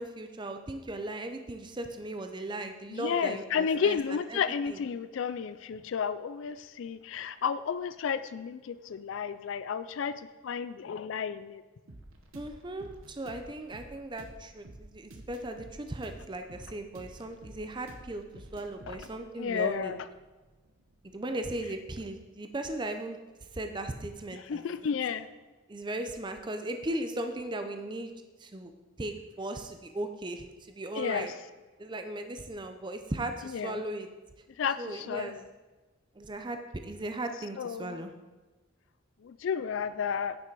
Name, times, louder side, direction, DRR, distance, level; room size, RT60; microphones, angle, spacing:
voice 1, 0.0-4.4 4.7-4.8 12.3-19.9 21.1-23.2 23.5-24.6 25.7-28.1 28.4-28.7 29.0-31.3 31.8-34.1 34.8-35.3 36.2-38.1, right 1 dB, 20° right, 7 dB, 0.5 m, -37 dB
voice 2, 2.9-11.6 18.9-19.0 19.4-20.0 24.3-25.3 31.0-31.3 33.5-33.8 34.6-35.4 37.6-38.0 39.2-40.4, left 7 dB, 65° left, 13 dB, 0.3 m, -32 dB
sound 1, 11.9-21.5, right 1 dB, 85° right, 1.1 m, -51 dB
9.7 x 6.1 x 4.6 m, 1.2 s
head